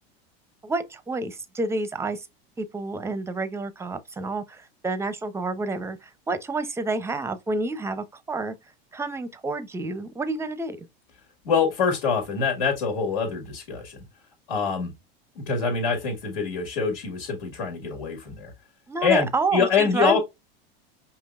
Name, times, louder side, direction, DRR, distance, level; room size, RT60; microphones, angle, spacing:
voice 1, 0.6-2.3 2.6-8.5 8.9-10.9 18.9-20.2, right 3 dB, 10° right, 0.5 m, -29 dB
voice 2, 11.4-14.0 14.5-14.9 15.4-18.5 19.0-20.2, left 6 dB, 80° left, 1.9 m, -25 dB
5.3 x 2.9 x 2.4 m
supercardioid pair, 110°, 30 cm